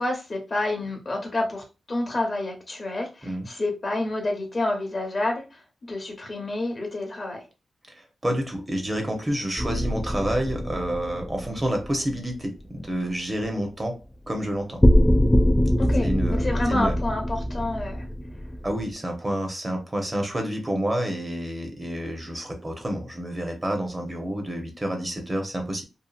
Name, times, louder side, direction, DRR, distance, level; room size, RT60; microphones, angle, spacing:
voice 1, 0.0-7.4 15.8-18.1, left 2 dB, 40° left, 0.8 m, -29 dB
voice 2, 7.9-14.0 14.3-14.8 16.0-16.9 18.6-25.8, right 1 dB, 25° right, 0.8 m, -29 dB
sound 1, 9.6-12.3 14.8-18.9, equal, 15° left, 0.3 m, -23 dB
2.7 x 2.4 x 2.4 m
cardioid pair, 80°, 0 cm